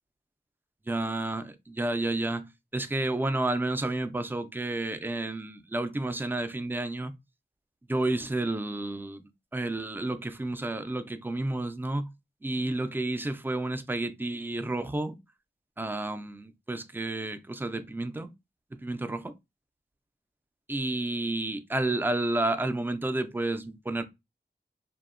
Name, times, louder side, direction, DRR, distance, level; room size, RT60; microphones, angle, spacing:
voice 1, 0.9-7.1 7.9-9.2 9.5-12.1 12.4-15.2 15.8-18.3 18.8-19.3 20.7-24.0, right 2 dB, 10° right, 0.3 m, -31 dB
2.7 x 2.0 x 2.4 m
wide cardioid pair, 70°, 19 cm